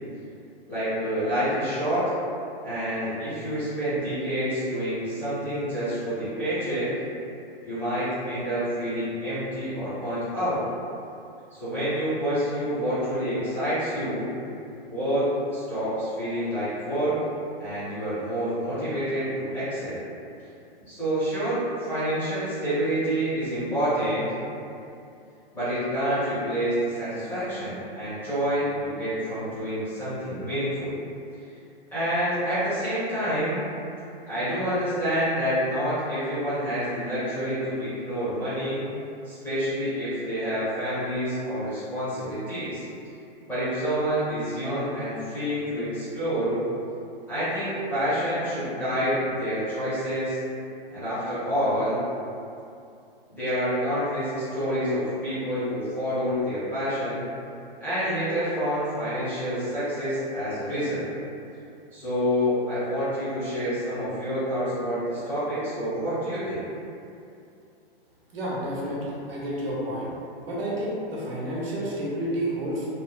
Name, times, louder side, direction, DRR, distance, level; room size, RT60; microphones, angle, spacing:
voice 1, 0.7-2.0 2.6-6.9 7.6-10.6 11.5-14.3 14.9-17.2 17.6-20.0 20.9-24.3 25.5-31.0 31.9-33.6 34.3-38.8 39.2-42.8 43.5-46.6 47.3-50.4 50.9-52.0 53.3-57.2 57.8-61.1 61.9-66.6, equal, 5° left, -16 dB, 0.6 m, -28 dB
voice 2, 68.3-70.1 70.4-72.9, right 1 dB, 75° right, -6 dB, 0.9 m, -30 dB
2.9 x 2.0 x 2.2 m, 2.6 s
hypercardioid pair, 160°, 30 cm